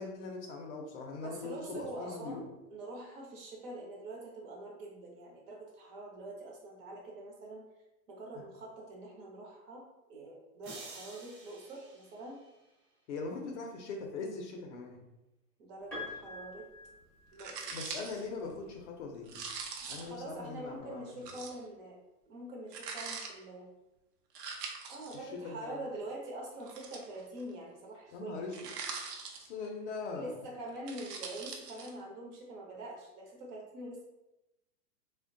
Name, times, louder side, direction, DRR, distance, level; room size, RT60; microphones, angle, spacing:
voice 1, 0.0-2.5 13.1-15.0 17.7-19.4 19.9-21.1 25.2-25.8 28.1-28.6 29.4-30.3, left 4 dB, 50° left, 2 dB, 0.5 m, -41 dB
voice 2, 1.2-7.6 8.1-9.8 10.1-12.4 15.6-16.6 17.3-17.7 19.9-22.0 22.3-23.7 24.9-28.6 30.1-34.0, right 1 dB, 35° right, -1 dB, 0.6 m, -45 dB
sound 1, 10.6-12.9, right 3 dB, 60° right, 1.0 m, -51 dB
Piano, 15.9-17.9 19.2-19.3, left 2 dB, 5° left, 0.6 m, -45 dB
sound 2, 17.4-18.3 19.3-20.2 21.3-21.6 22.7-23.3 24.4-25.2 26.6-27.4 28.5-29.7 30.7-31.9, right 5 dB, 85° right, 0.7 m, -42 dB
2.7 x 2.1 x 2.5 m, 0.95 s
hypercardioid pair, 140°, 47 cm